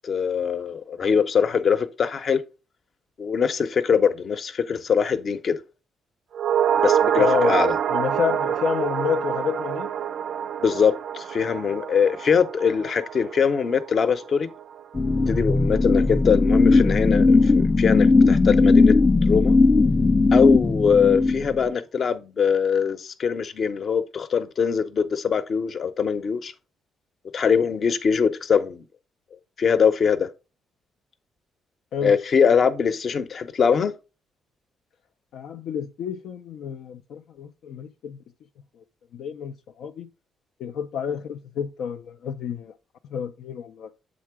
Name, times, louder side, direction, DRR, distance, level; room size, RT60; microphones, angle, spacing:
voice 1, 0.0-2.4 3.2-5.6 6.8-7.8 10.6-14.5 15.3-18.9 19.3-19.6 20.3-26.5 27.3-28.8 29.6-30.3 32.0-33.9, left 6 dB, 50° left, 0.7 m, -22 dB
sound 1, 6.3-14.8 15.1-15.2, right 9 dB, 65° right, 0.4 m, -26 dB
voice 2, 7.2-7.6 7.9-9.9 31.9-32.2 35.3-38.2 39.1-40.1 40.6-42.7 43.1-43.9, left 7 dB, 75° left, 0.4 m, -29 dB
sound 2, 14.9-21.7, left 3 dB, 20° left, 0.5 m, -18 dB
7.5 x 3.7 x 4.7 m
cardioid pair, 90°, 0 cm